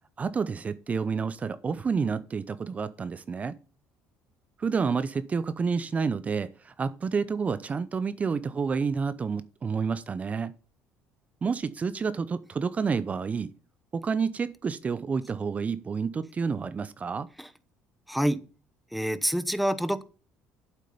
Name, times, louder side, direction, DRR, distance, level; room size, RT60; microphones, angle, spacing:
voice 1, 0.2-3.6 4.6-10.5 11.4-13.5 13.9-17.3, right 5 dB, 30° right, 0.7 m, -29 dB
voice 2, 18.1-18.4 18.9-20.0, equal, ahead, 0.9 m, -27 dB
8.3 x 7.8 x 5.5 m
supercardioid pair, 85°, 5 cm